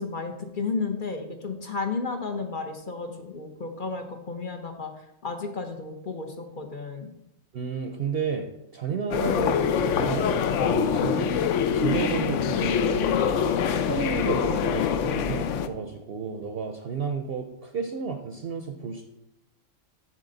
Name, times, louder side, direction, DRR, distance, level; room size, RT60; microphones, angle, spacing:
voice 1, 0.0-4.9 5.2-7.1, left 4 dB, 45° left, 5 dB, 0.8 m, -33 dB
voice 2, 7.5-11.3 11.6-13.5 13.8-19.0, right 5 dB, 55° right, 5 dB, 0.7 m, -32 dB
sound 1, 9.1-15.7, left 7 dB, 70° left, 0.9 m, -24 dB
7.6 x 6.4 x 3.9 m, 0.83 s
omnidirectional pair, 1.4 m